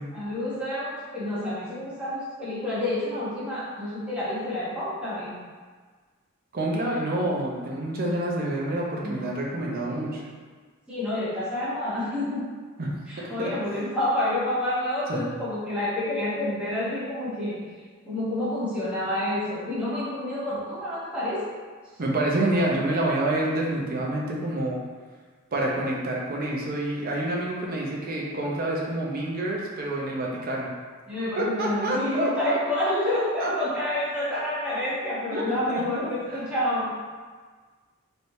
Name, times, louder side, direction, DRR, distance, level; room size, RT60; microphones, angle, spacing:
voice 1, 0.1-5.3 8.0-8.2 9.0-9.3 9.6-10.0 10.9-12.4 13.1-17.6 18.0-21.4 31.1-36.9, left 1 dB, 5° right, -11 dB, 1.0 m, -29 dB
voice 2, 6.5-10.2 12.8-12.9 13.2-13.5 15.1-15.3 22.0-24.8 25.5-30.7 31.4-32.6 33.4-33.5 35.3-36.1, right 1 dB, 45° right, -3 dB, 0.6 m, -27 dB
3.2 x 3.1 x 2.7 m, 1.5 s
head